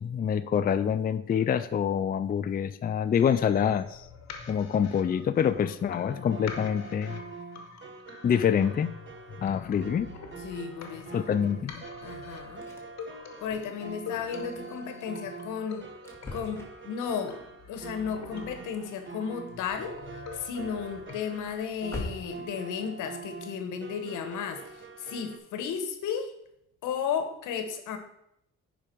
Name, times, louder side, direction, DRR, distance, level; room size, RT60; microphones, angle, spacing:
voice 1, 0.0-4.1 4.5-7.2 8.2-8.9 9.4-10.1 11.1-11.7, left 8 dB, 30° left, 11 dB, 0.4 m, -26 dB
sound 1, 3.1-21.1, left 5 dB, 60° left, 1.3 m, -46 dB
sound 2, 6.1-25.4, right 4 dB, 40° right, 1.2 m, -45 dB
voice 2, 10.4-12.7 13.4-15.9 16.3-17.4 17.7-20.0 20.3-26.3 26.8-28.0, left 7 dB, 85° left, 8 dB, 1.2 m, -34 dB
sound 3, 12.5-13.1 13.4-13.6 14.0-14.2 14.7-14.8 15.4-15.5 16.0-22.6 24.4-24.9 25.4-25.5 25.9-26.0, left 2 dB, 10° left, 2.1 m, -44 dB
9.9 x 5.0 x 4.5 m, 0.77 s
cardioid pair, 90°, 30 cm